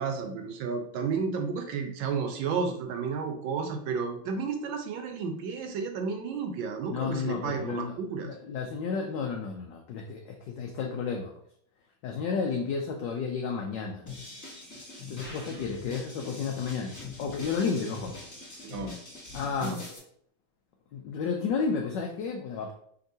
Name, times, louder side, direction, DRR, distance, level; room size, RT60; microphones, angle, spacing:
voice 1, 0.0-8.3 18.6-18.9 19.6-19.8, right 5 dB, 75° right, 5 dB, 1.4 m, -32 dB
voice 2, 6.9-7.9 8.2-11.3 12.0-14.0 15.1-18.2 19.3-19.8 20.9-22.7, left 5 dB, 75° left, 1 dB, 1.1 m, -32 dB
sound 1, 14.1-20.0, left 3 dB, 15° left, 0.8 m, -43 dB
5.4 x 2.9 x 2.6 m, 0.65 s
omnidirectional pair, 2.2 m